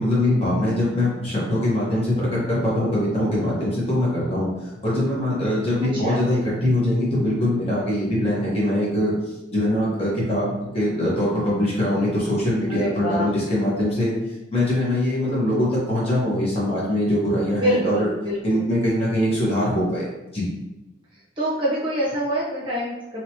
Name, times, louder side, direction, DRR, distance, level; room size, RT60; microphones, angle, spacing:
voice 1, 0.0-9.1 9.5-14.1 14.5-18.1 18.4-20.4, left 1 dB, 30° left, -7 dB, 1.1 m, -22 dB
voice 2, 5.9-6.2 12.7-13.3 17.6-18.7 21.1-23.2, equal, 25° right, -7 dB, 0.9 m, -26 dB
3.0 x 2.9 x 2.9 m, 0.97 s
head